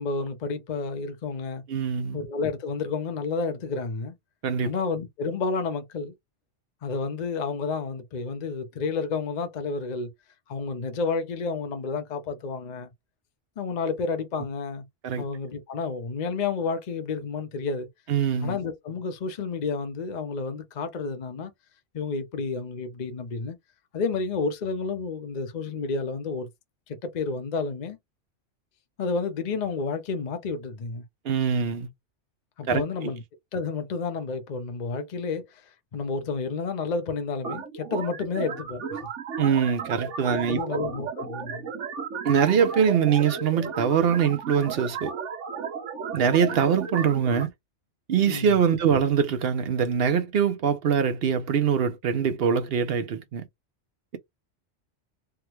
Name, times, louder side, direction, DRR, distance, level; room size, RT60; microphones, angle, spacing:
voice 1, 0.0-1.6 2.1-4.1 4.6-6.1 6.8-10.1 10.5-12.9 13.6-14.8 15.2-17.9 18.4-21.5 21.9-23.6 23.9-26.5 26.9-28.0 29.0-31.0 32.6-33.2 33.5-39.1 40.2-41.7 48.3-48.5, left 4 dB, 45° left, 0.7 m, -30 dB
voice 2, 1.7-2.2 4.4-4.7 15.0-15.3 18.1-18.6 31.2-31.9 32.7-33.1 39.4-40.6 42.2-45.1 46.1-47.5 48.1-53.4, right 7 dB, 60° right, 0.8 m, -23 dB
sound 1, 37.4-47.4, right 6 dB, 75° right, 1.2 m, -34 dB
3.5 x 2.2 x 2.9 m
omnidirectional pair, 1.2 m